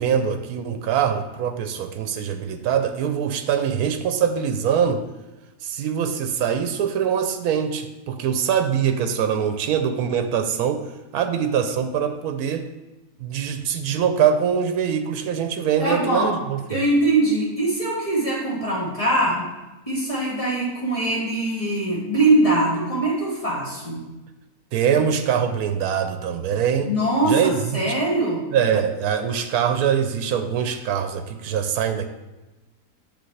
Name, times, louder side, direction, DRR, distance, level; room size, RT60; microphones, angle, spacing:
voice 1, 0.0-5.0 5.6-10.9 11.1-12.7 13.2-16.8 24.7-26.9 27.2-27.8 28.5-32.1, right 8 dB, 85° right, 8 dB, 1.1 m, -23 dB
voice 2, 15.8-16.3 16.7-19.5 19.9-24.0 26.8-28.4, right 2 dB, 25° left, -6 dB, 2.3 m, -22 dB
8.0 x 6.3 x 3.2 m, 1.1 s
omnidirectional pair, 1.6 m